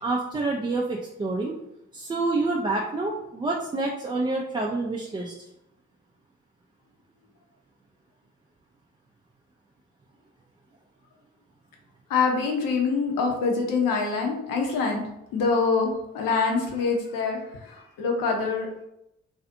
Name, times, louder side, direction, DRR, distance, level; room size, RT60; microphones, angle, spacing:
voice 1, 0.0-1.5 1.9-5.4, right 2 dB, 15° right, -2 dB, 0.3 m, -27 dB
voice 2, 12.1-15.0 15.3-17.4 17.7-18.7, left 4 dB, 60° left, 1 dB, 0.7 m, -25 dB
2.5 x 2.4 x 2.5 m, 0.82 s
figure-of-eight pair, 40°, 37 cm